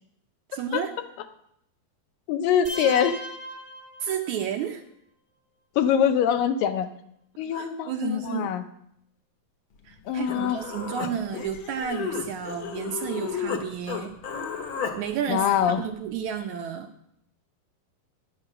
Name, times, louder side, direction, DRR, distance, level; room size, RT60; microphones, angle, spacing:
voice 1, 0.5-0.9 4.0-4.8 7.5-8.5 9.9-14.1 15.0-15.5 15.8-16.9, right 8 dB, 75° right, 5 dB, 1.9 m, -31 dB
voice 2, 2.3-3.2 5.8-6.9 7.4-8.6 10.1-10.6 15.3-15.8, left 8 dB, 80° left, 8 dB, 2.5 m, -23 dB
sound 1, 2.6-4.6, right 1 dB, 15° right, 1.0 m, -38 dB
Human voice, 9.9-10.0 10.3-13.6 13.9-14.9, left 7 dB, 60° left, 1.4 m, -33 dB
11.0 x 10.0 x 6.1 m, 0.75 s
omnidirectional pair, 4.0 m